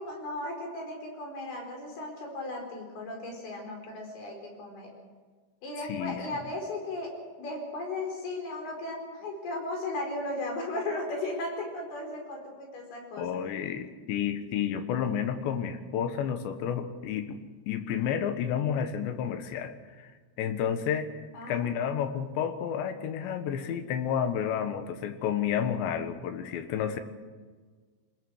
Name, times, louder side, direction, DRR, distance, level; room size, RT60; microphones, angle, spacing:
voice 1, 0.0-4.9 5.6-7.1 7.4-13.3 21.3-21.7, left 2 dB, 60° left, 2 dB, 6.4 m, -36 dB
voice 2, 5.9-6.2 13.2-17.4 17.7-20.1 20.4-27.0, left 8 dB, 80° left, 9 dB, 3.6 m, -31 dB
24.5 x 20.5 x 6.4 m, 1.5 s
omnidirectional pair, 5.1 m